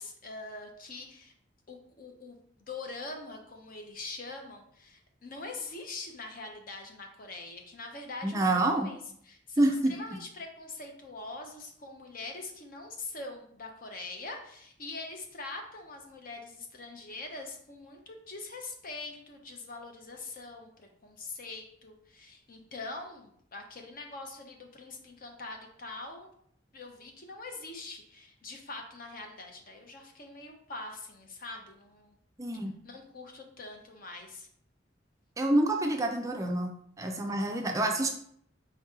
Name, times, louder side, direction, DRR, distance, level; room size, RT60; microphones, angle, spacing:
voice 1, 0.0-1.3 1.7-2.4 2.7-26.3 26.7-32.1 32.8-34.5, left 3 dB, 50° left, 3 dB, 0.7 m, -43 dB
voice 2, 8.2-8.9 9.6-9.9 32.4-32.7 35.4-38.1, right 1 dB, 15° right, 2 dB, 0.4 m, -27 dB
4.5 x 2.8 x 3.6 m, 0.66 s
head